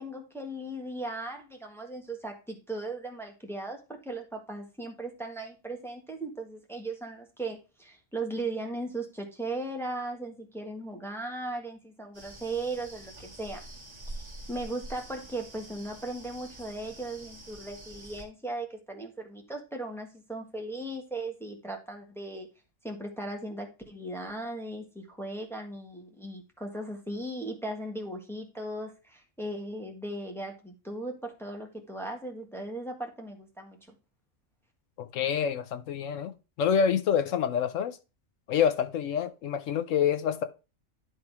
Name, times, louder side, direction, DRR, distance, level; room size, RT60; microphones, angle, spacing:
voice 1, 0.0-13.6 14.1-22.5 22.8-33.8, right 2 dB, ahead, 1.5 m, -37 dB
sound 1, 12.1-18.3, right 1 dB, 35° right, 1.9 m, -46 dB
voice 2, 35.0-38.0 38.5-40.4, left 8 dB, 75° left, 1.0 m, -27 dB
11.0 x 3.8 x 4.7 m
omnidirectional pair, 1.4 m